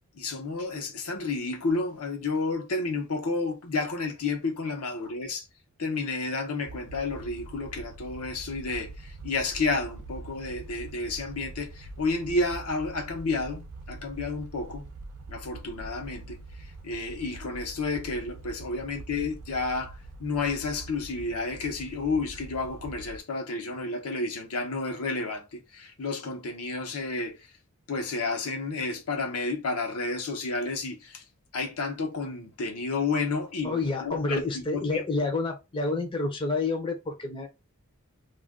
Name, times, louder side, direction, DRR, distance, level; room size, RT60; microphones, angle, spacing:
voice 1, 0.2-5.5 5.8-14.9 15.3-16.4 16.8-27.4 27.9-31.2 31.5-35.2, left 3 dB, 80° left, 0.8 m, -31 dB
sound 1, 6.7-23.2, right 3 dB, 75° right, 0.5 m, -44 dB
voice 2, 33.6-37.5, left 3 dB, 20° left, 0.5 m, -29 dB
2.4 x 2.2 x 3.4 m
head